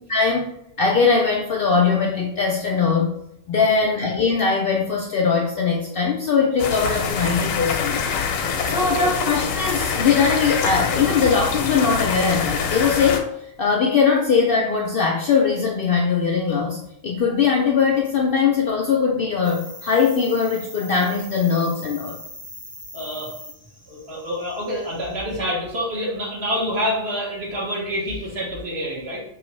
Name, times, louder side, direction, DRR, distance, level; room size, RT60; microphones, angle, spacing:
voice 1, 0.1-0.5 0.8-3.1 3.5-8.0 8.6-13.2 13.6-22.2, left 5 dB, 65° left, 0 dB, 0.6 m, -20 dB
voice 2, 3.5-3.9 8.8-9.1 22.9-23.3 23.9-29.2, equal, 55° right, -4 dB, 1.5 m, -27 dB
sound 1, 6.6-13.2, left 6 dB, 85° left, 1.0 m, -25 dB
sound 2, 19.4-25.2, left 1 dB, 10° right, 0.9 m, -41 dB
4.6 x 3.1 x 3.1 m, 0.78 s
omnidirectional pair, 1.4 m